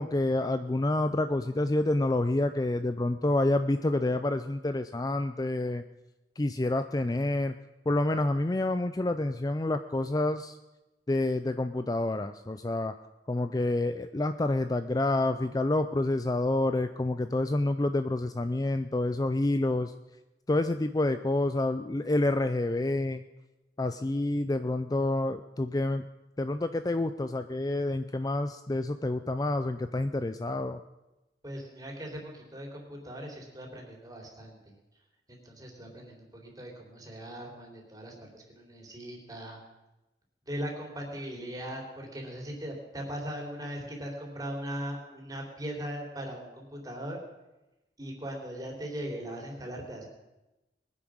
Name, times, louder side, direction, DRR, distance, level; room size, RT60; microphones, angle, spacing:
voice 1, 0.0-5.8 6.4-7.5 7.9-10.6 11.1-12.9 13.3-19.9 20.5-23.2 23.8-26.1 26.4-30.8, left 2 dB, 20° left, 10 dB, 0.4 m, -28 dB
voice 2, 31.4-34.7 35.3-39.6 40.5-47.2 48.0-50.0, equal, 20° right, 0 dB, 3.4 m, -39 dB
20.5 x 10.0 x 6.3 m, 1.0 s
head